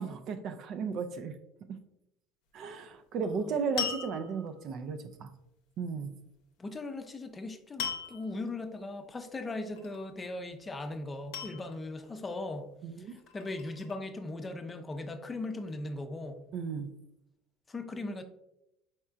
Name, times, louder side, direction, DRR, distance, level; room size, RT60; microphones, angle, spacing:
voice 1, 0.0-1.3 2.5-5.3 5.8-6.1 12.8-13.2 16.5-16.9, right 5 dB, 55° right, 9 dB, 0.5 m, -35 dB
sound 1, 3.8-4.7 7.8-8.4 9.7-10.3 11.3-12.1 13.1-14.0, left 7 dB, 80° left, 0.7 m, -38 dB
voice 2, 6.6-12.7 13.0-16.4 17.7-18.2, left 2 dB, 25° left, 7 dB, 0.5 m, -39 dB
4.3 x 4.3 x 2.4 m, 0.85 s
hypercardioid pair, 80°, 0 cm